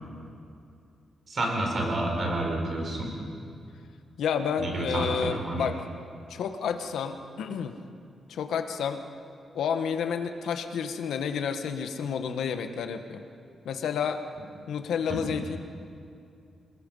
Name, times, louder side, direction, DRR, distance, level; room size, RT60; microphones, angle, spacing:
voice 1, 1.3-3.1 4.6-5.6 15.1-15.2, right 1 dB, 35° right, 1 dB, 4.4 m, -29 dB
voice 2, 4.2-5.8 6.3-7.7 8.3-9.0 9.5-13.2 13.6-14.2 14.7-15.6, left 7 dB, 80° left, 7 dB, 1.4 m, -30 dB
27.0 x 20.0 x 5.6 m, 2.5 s
wide cardioid pair, 175°, 0 cm